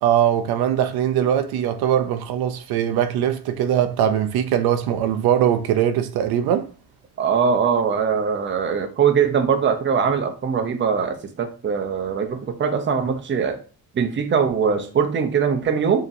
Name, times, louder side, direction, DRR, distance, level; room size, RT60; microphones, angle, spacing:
voice 1, 0.0-6.7, right 10 dB, 80° right, 0.6 m, -21 dB
voice 2, 7.2-13.6 13.9-16.1, right 6 dB, 30° right, 0.7 m, -21 dB
5.2 x 3.0 x 2.6 m
cardioid pair, 120°, 37 cm